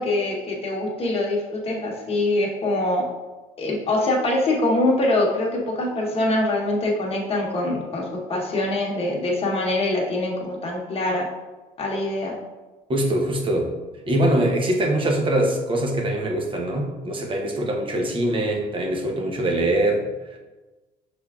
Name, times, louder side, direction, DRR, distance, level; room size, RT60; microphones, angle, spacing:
voice 1, 0.0-3.1 3.6-11.3 11.8-12.4, left 2 dB, 35° left, -2 dB, 1.1 m, -24 dB
voice 2, 12.9-13.7 14.0-20.1, right 1 dB, 30° right, 1 dB, 0.8 m, -23 dB
5.6 x 3.4 x 2.4 m, 1.2 s
cardioid pair, 110°, 17 cm